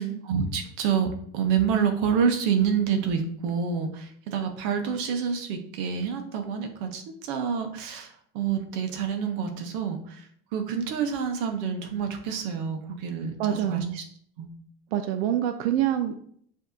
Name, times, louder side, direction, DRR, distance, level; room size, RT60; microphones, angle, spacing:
voice 1, 0.0-14.0 14.4-14.5, right 7 dB, 55° right, 5 dB, 0.8 m, -28 dB
voice 2, 13.4-14.0 14.9-16.2, right 11 dB, 90° right, 7 dB, 0.5 m, -26 dB
7.0 x 2.7 x 2.6 m, 0.63 s
cardioid pair, 175°, 30 cm